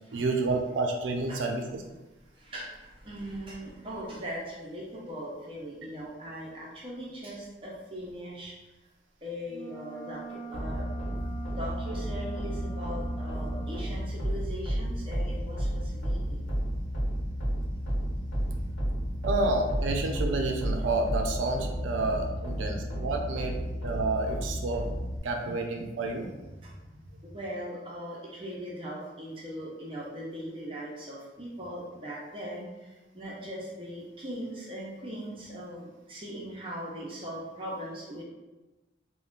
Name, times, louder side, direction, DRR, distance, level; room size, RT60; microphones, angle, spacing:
voice 1, 0.1-1.8 19.2-24.9 25.2-26.3, right 2 dB, 85° right, 3 dB, 0.4 m, -29 dB
voice 2, 2.4-8.5 9.2-10.2 10.5-10.9 11.6-16.4 25.5-25.6 26.6-26.8 27.2-32.6 33.1-38.2, equal, 30° right, -4 dB, 0.5 m, -39 dB
sound 1, 9.5-13.9, right 3 dB, 55° left, 0.5 m, -41 dB
sound 2, 10.5-25.2, equal, 85° left, 0.9 m, -32 dB
2.4 x 2.1 x 3.6 m, 1.1 s
head